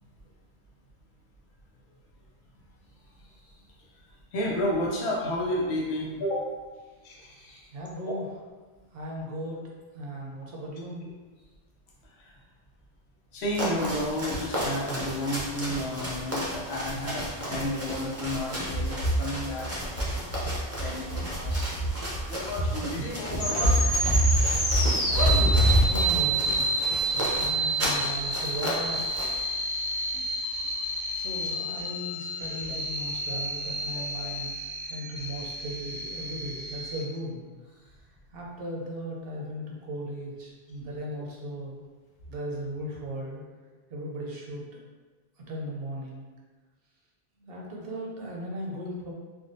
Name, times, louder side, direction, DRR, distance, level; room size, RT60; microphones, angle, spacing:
voice 1, 3.1-3.6 3.9-6.5 7.0-7.7 8.0-8.1 12.0-12.4 13.3-20.1 20.4-21.9 22.3-25.9 30.2-30.6 32.7-32.8 33.3-33.4 33.9-34.3, equal, 80° left, -3 dB, 1.0 m, -28 dB
voice 2, 7.7-8.3 8.9-9.7 9.9-11.1 20.9-21.0 25.8-29.1 29.5-29.8 30.1-30.2 31.1-34.5 34.9-37.5 38.3-41.8 42.3-43.4 43.9-44.8 45.5-46.3 47.4-49.1, equal, 65° right, -2 dB, 0.8 m, -37 dB
sound 1, 13.4-29.4, equal, 20° right, 0.5 m, -35 dB
sound 2, 23.4-37.0, right 2 dB, 35° left, 0.8 m, -30 dB
3.5 x 2.2 x 2.6 m, 1.3 s
omnidirectional pair, 1.1 m